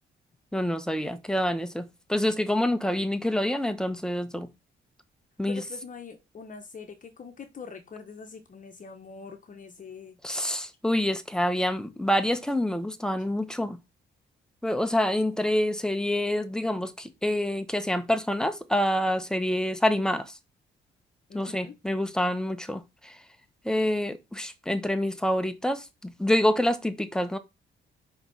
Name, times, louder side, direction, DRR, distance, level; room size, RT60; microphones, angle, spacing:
voice 1, 0.5-4.5 5.4-5.6 10.2-13.8 14.6-20.4 21.3-23.2 23.6-27.4, left 1 dB, 5° left, 1.1 m, -27 dB
voice 2, 5.5-10.2 21.3-21.7, left 5 dB, 40° left, 1.3 m, -43 dB
5.5 x 5.2 x 6.3 m
cardioid pair, 90°, 20 cm